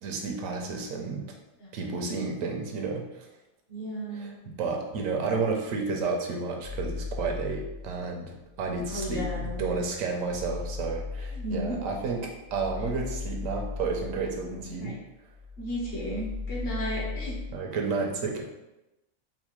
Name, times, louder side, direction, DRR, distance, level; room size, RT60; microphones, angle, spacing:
voice 1, 0.0-1.3 1.7-3.3 4.1-15.0 17.5-18.4, right 4 dB, 85° right, 1 dB, 1.0 m, -31 dB
voice 2, 1.6-2.3 3.7-4.4 8.9-9.7 11.3-11.8 14.8-14.9 15.6-17.4, equal, 50° left, -4 dB, 1.0 m, -34 dB
sound 1, 6.6-8.0 8.4-15.0 15.3-17.6, left 4 dB, 30° right, 0.3 m, -37 dB
4.0 x 2.1 x 3.0 m, 0.97 s
omnidirectional pair, 1.4 m